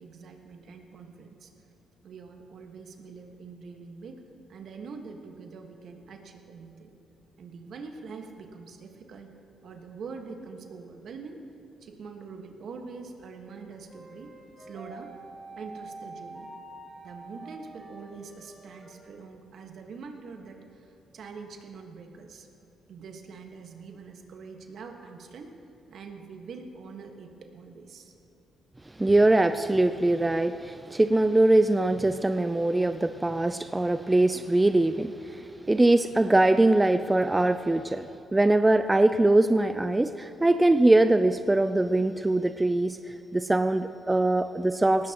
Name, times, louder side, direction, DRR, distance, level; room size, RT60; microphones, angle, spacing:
voice 1, 0.0-1.5 2.0-4.2 4.5-6.9 7.4-9.3 9.6-11.4 11.8-15.1 15.5-16.5 17.0-22.5 22.9-25.5 25.9-28.1, right 4 dB, 65° right, 4 dB, 1.5 m, -44 dB
sound 1, 13.9-19.0, right 2 dB, 25° left, 4.0 m, -46 dB
voice 2, 29.0-45.1, right 2 dB, 15° right, 10 dB, 0.4 m, -22 dB
18.5 x 16.0 x 3.0 m, 2.7 s
cardioid pair, 90°, 0 cm